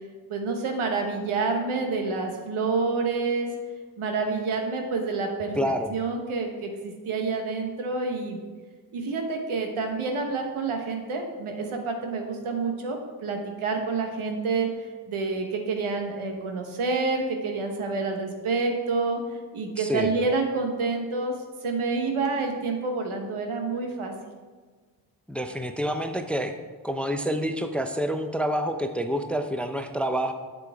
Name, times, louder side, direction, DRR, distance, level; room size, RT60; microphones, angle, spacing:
voice 1, 0.3-3.5 4.0-5.6 5.9-8.4 8.9-14.7 15.1-19.2 19.5-21.3 21.6-24.1, right 4 dB, 80° right, 3 dB, 1.3 m, -28 dB
voice 2, 5.6-5.9 19.8-20.1 25.3-26.6 26.8-30.3, equal, ahead, 7 dB, 0.6 m, -27 dB
8.1 x 6.8 x 3.5 m, 1.4 s
supercardioid pair, 45°, 49 cm